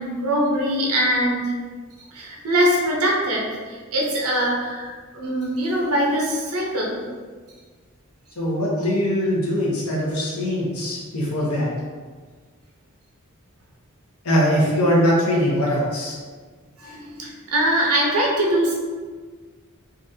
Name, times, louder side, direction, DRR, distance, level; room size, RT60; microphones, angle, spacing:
voice 1, 0.0-1.5 2.1-7.0 16.8-18.8, right 1 dB, 90° right, -2 dB, 0.8 m, -22 dB
voice 2, 8.4-11.7 14.2-16.2, equal, 90° left, -5 dB, 1.1 m, -21 dB
3.9 x 2.5 x 2.8 m, 1.5 s
head